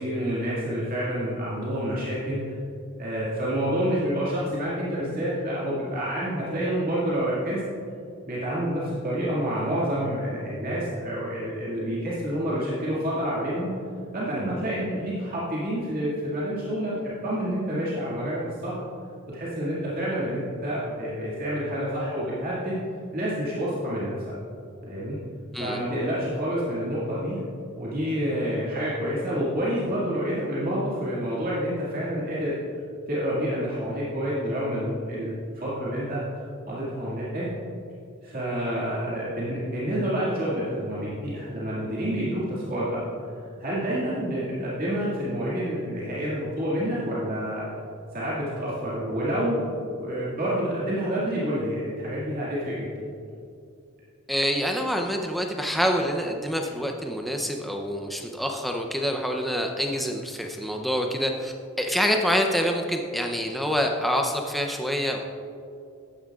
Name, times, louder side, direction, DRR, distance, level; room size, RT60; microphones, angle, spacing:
voice 1, 0.0-2.4 3.0-7.6 8.3-13.7 14.1-18.8 19.3-22.8 23.1-24.1 24.8-25.2 25.5-27.4 27.8-32.5 33.1-37.5 38.2-43.0 43.6-47.7 48.1-49.6 50.0-52.9, equal, 40° right, -8 dB, 2.0 m, -28 dB
voice 2, 54.3-65.2, equal, ahead, 2 dB, 0.5 m, -26 dB
14.0 x 9.9 x 2.4 m, 2.5 s
head